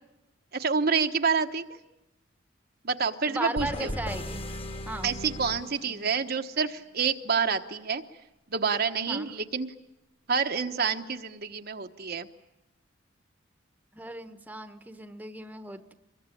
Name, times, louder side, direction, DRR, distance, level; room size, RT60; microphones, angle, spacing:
voice 1, 0.5-1.6 2.8-4.0 5.0-8.0 8.5-9.7 10.3-12.3, right 5 dB, 50° right, 6 dB, 1.2 m, -28 dB
voice 2, 3.3-4.5 4.9-5.1 9.1-9.3 13.9-15.9, right 2 dB, 10° right, 9 dB, 1.2 m, -36 dB
sound 1, 3.6-6.4, equal, 30° left, 1.7 m, -37 dB
25.0 x 22.0 x 10.0 m, 0.94 s
head